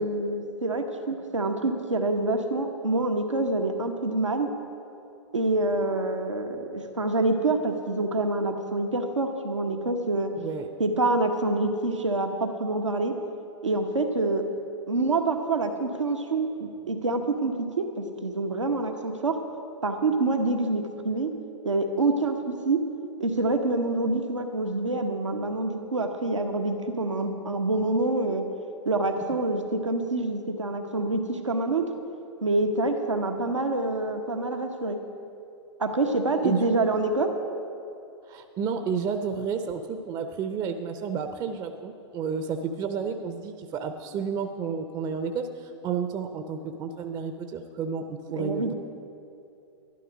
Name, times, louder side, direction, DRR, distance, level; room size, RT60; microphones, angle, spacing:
voice 1, 0.0-4.5 5.3-10.3 10.8-13.1 13.6-14.4 14.9-19.4 19.8-21.3 21.6-22.8 23.2-28.4 28.8-31.8 32.4-35.0 35.8-37.3 48.3-48.7, right 2 dB, 85° right, 4 dB, 1.1 m, -26 dB
voice 2, 10.3-10.7 36.4-36.7 38.3-48.7, right 6 dB, 25° right, 7 dB, 0.6 m, -31 dB
12.0 x 11.5 x 5.2 m, 2.6 s
figure-of-eight pair, 110°, 15 cm